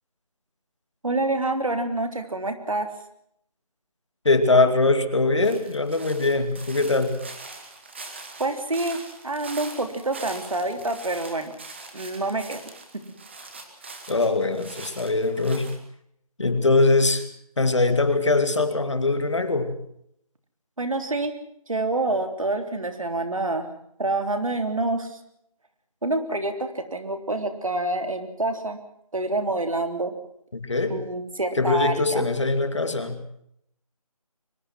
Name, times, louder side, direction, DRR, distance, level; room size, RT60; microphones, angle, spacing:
voice 1, 1.0-2.9 8.4-11.5 11.9-12.6 12.9-13.0 20.8-21.3 21.7-23.7 24.0-25.2 26.0-28.8 29.1-30.1 30.9-32.2, right 2 dB, 60° right, 7 dB, 3.6 m, -27 dB
voice 2, 4.2-7.2 14.1-15.8 16.4-17.2 17.6-19.7 30.5-31.0 31.5-33.2, left 3 dB, 50° left, 9 dB, 2.6 m, -22 dB
sound 1, 5.4-15.8, right 3 dB, 20° right, 2.1 m, -42 dB
23.0 x 21.5 x 6.2 m, 0.72 s
figure-of-eight pair, 175°, 19 cm